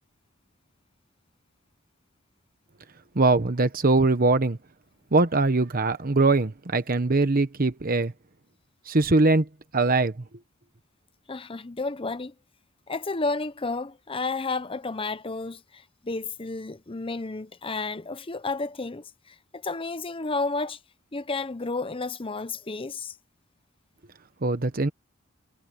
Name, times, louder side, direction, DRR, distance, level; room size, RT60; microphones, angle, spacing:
voice 1, 3.1-4.6 5.1-8.1 8.9-9.5 9.7-10.1 24.4-24.9, right 3 dB, 45° right, 1.0 m, -22 dB
voice 2, 11.3-12.3 12.9-20.8 21.1-23.1, left 3 dB, 25° left, 0.8 m, -32 dB
head